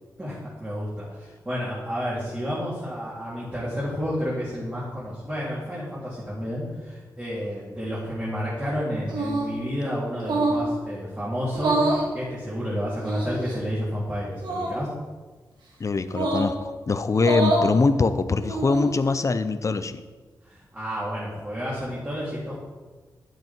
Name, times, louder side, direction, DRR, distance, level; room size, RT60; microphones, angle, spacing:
voice 1, 0.2-14.9 20.4-22.6, equal, 20° right, -8 dB, 3.7 m, -30 dB
sound 1, 9.1-9.6 10.2-10.7 11.5-12.1 13.0-13.6 14.4-14.7 16.1-16.5 17.1-17.7 18.4-18.9, right 2 dB, 80° right, 2.0 m, -25 dB
voice 2, 15.8-20.0, left 4 dB, 45° left, 11 dB, 0.7 m, -23 dB
10.5 x 7.8 x 4.6 m, 1.3 s
cardioid pair, 65°, 8 cm